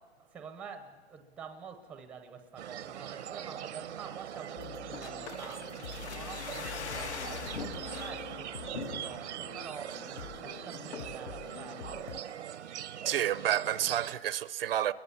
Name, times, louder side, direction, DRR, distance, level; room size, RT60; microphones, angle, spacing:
voice 1, 0.2-7.2 7.5-10.0 10.4-12.1, right 6 dB, 5° right, 0.6 m, -47 dB
sound 1, 2.6-14.1, right 10 dB, 80° right, 0.9 m, -42 dB
sound 2, 4.6-12.2, left 10 dB, 40° left, 0.7 m, -46 dB
sound 3, 4.9-8.2 8.7-9.4 9.8-9.9 10.1-10.4 10.9-11.2 11.7-12.4 12.7-12.8, left 7 dB, 75° left, 1.8 m, -43 dB
voice 2, 13.0-14.9, right 11 dB, 55° right, 0.6 m, -29 dB
30.0 x 22.5 x 7.0 m
hypercardioid pair, 160°, 34 cm